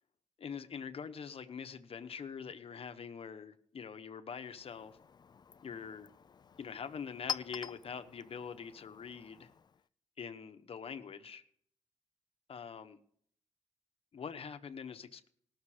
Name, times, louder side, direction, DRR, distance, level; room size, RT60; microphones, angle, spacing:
voice 1, 0.4-5.0 5.6-6.1 6.6-9.5 10.2-11.4 12.5-13.0 14.1-15.3, left 6 dB, 55° left, 9 dB, 1.0 m, -44 dB
Chink clink, 4.4-9.9, left 7 dB, 40° left, 0.4 m, -46 dB
19.0 x 6.5 x 5.0 m, 0.63 s
cardioid pair, 95°, 11 cm